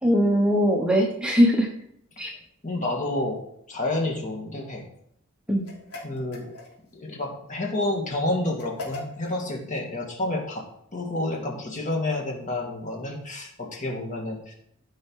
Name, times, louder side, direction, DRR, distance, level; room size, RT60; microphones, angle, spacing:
voice 1, 0.0-1.7 2.2-2.3 5.5-5.7, equal, 5° right, -1 dB, 1.0 m, -20 dB
voice 2, 2.6-3.4 3.7-4.8 6.0-6.6 6.9-10.6 10.9-14.5, left 2 dB, 35° left, 0 dB, 2.3 m, -29 dB
sound 1, 5.6-7.0 8.6-9.4, left 2 dB, 80° left, 3.5 m, -39 dB
14.5 x 5.7 x 4.9 m, 0.71 s
head